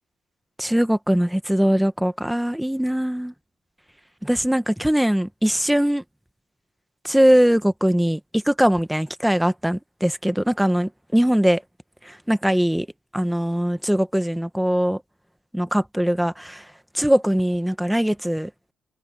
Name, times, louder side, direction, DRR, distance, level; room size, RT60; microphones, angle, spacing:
voice 1, 0.6-3.3 4.2-6.0 7.0-11.6 12.0-12.9 13.1-15.0 15.5-16.6 16.9-18.5, equal, 5° right, 1.3 m, -21 dB
open air
cardioid pair, 90°, 0 cm